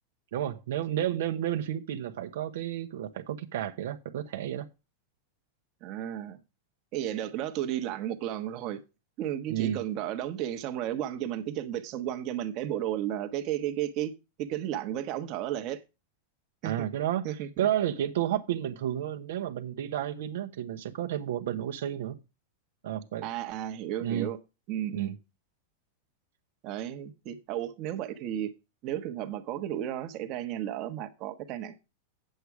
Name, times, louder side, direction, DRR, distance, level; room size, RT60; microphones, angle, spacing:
voice 1, 0.3-4.7 9.5-9.8 16.6-17.3 17.6-22.2 22.8-23.3 24.0-24.3 24.9-25.1, right 11 dB, 75° right, 1.1 m, -31 dB
voice 2, 5.8-6.4 6.9-8.8 9.2-14.1 14.4-15.8 16.6-16.9 17.2-17.7 23.2-24.4 24.7-25.1 26.6-28.5 28.8-31.8, right 11 dB, 45° right, 1.3 m, -33 dB
8.2 x 7.9 x 4.9 m
supercardioid pair, 125°, 0 cm